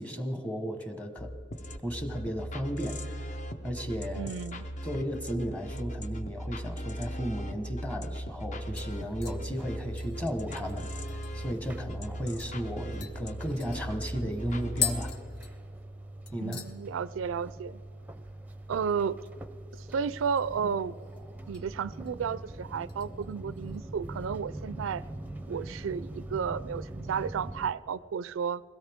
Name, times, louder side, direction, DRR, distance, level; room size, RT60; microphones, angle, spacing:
voice 1, 0.0-1.3 1.8-4.3 4.8-15.2 16.3-16.6, equal, 10° left, 6 dB, 1.1 m, -35 dB
sound 1, 1.2-15.1, equal, 40° left, 0.8 m, -38 dB
voice 2, 4.1-4.7 16.4-17.8 18.7-19.2 19.9-21.0 21.5-25.0 25.5-28.6, right 6 dB, 85° right, 18 dB, 0.4 m, -32 dB
sound 2, 7.7-7.8 8.1-8.5 8.8-11.6 11.9-12.0 12.4-12.6 13.0-16.0 16.3-16.8 17.1-17.5 17.8-17.9 20.0-20.6 20.9-21.7 22.1-22.3 22.9-23.8 24.2-24.3, left 8 dB, 60° left, 1.0 m, -40 dB
sound 3, 8.7-27.7, right 1 dB, 10° right, 0.6 m, -43 dB
22.0 x 17.0 x 3.6 m, 2.5 s
head